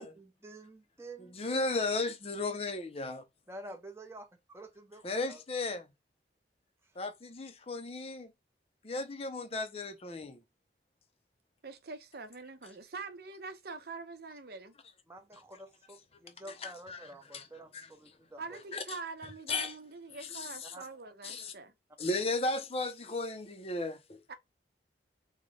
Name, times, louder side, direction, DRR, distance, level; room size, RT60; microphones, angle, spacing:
voice 1, 0.0-1.7 3.5-5.4 6.8-7.0 15.1-18.6 20.7-20.8, right 1 dB, 15° right, 0.7 m, -49 dB
voice 2, 1.3-3.2 5.0-5.9 7.0-8.3 8.8-10.4 16.6-17.5 17.7-17.9 18.7-18.8 19.5-19.7 20.2-20.7 21.2-21.5 22.0-24.2, left 2 dB, 35° left, 0.6 m, -35 dB
voice 3, 11.6-14.7 18.4-21.7 24.3-24.4, right 4 dB, 55° right, 0.8 m, -44 dB
3.9 x 2.2 x 3.2 m
head